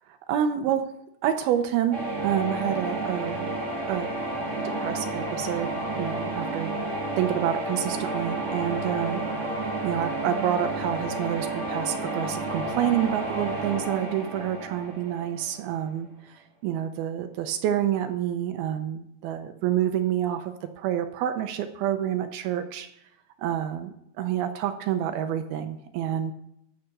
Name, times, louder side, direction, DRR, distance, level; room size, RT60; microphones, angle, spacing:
voice 1, 0.3-0.9 1.2-2.0 2.2-3.5 3.9-4.1 4.8-5.7 6.0-6.7 7.2-9.2 9.8-16.1 16.6-22.9 23.4-26.3, right 10 dB, 80° right, 7 dB, 2.4 m, -28 dB
sound 1, 1.9-15.8, right 2 dB, 25° right, 1.6 m, -31 dB
13.5 x 5.8 x 6.5 m, 0.77 s
omnidirectional pair, 4.8 m